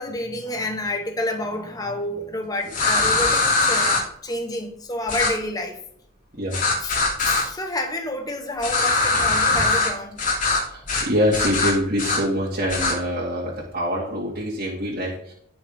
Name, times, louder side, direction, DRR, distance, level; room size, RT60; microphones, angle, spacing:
voice 1, 0.0-5.8 6.8-10.2, left 1 dB, 20° left, 3 dB, 1.3 m, -29 dB
sound 1, 2.7-4.0 5.1-5.3 6.5-7.4 8.6-9.9 10.2-10.6 10.9-11.1 11.3-12.2 12.7-12.9, left 3 dB, 40° left, 3.2 m, -21 dB
voice 2, 10.7-15.3, equal, 50° right, -5 dB, 2.3 m, -25 dB
18.0 x 6.1 x 3.7 m, 0.66 s
head